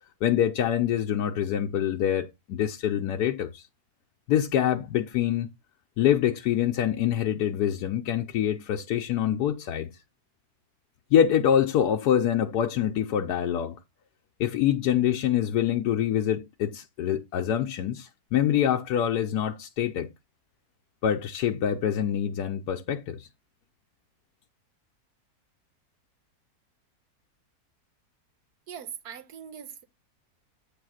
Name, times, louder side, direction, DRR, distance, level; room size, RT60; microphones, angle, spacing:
voice 1, 0.2-3.6 4.3-5.5 6.0-9.9 11.1-13.8 14.4-20.1 21.0-23.3, left 10 dB, 90° left, 1.3 m, -25 dB
voice 2, 28.7-29.8, right 8 dB, 80° right, 1.5 m, -41 dB
8.5 x 3.4 x 6.3 m
omnidirectional pair, 1.6 m